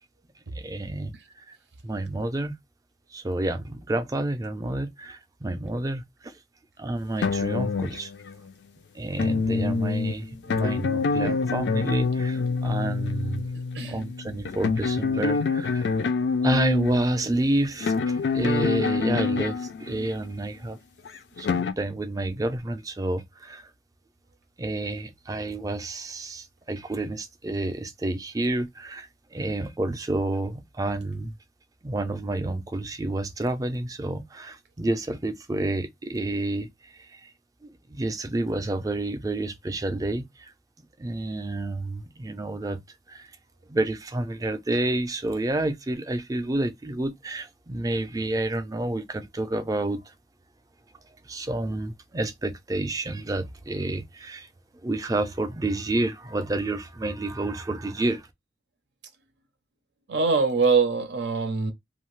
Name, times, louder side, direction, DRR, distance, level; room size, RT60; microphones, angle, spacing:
voice 1, 0.5-1.1 1.5-1.6 1.8-2.6 3.1-6.4 6.8-8.1 8.9-13.5 13.8-16.0 16.4-20.8 21.4-23.7 24.6-31.3 31.8-37.3 37.6-40.5 41.0-42.8 43.1-43.3 43.7-50.1 51.2-54.5 54.8-58.3, right 2 dB, 20° right, 0.4 m, -29 dB
sound 1, 7.2-8.5 9.2-20.3 21.1-21.7, left 4 dB, 75° left, 0.4 m, -26 dB
voice 2, 60.1-61.7, right 4 dB, 80° right, 0.6 m, -23 dB
2.7 x 2.3 x 3.0 m
head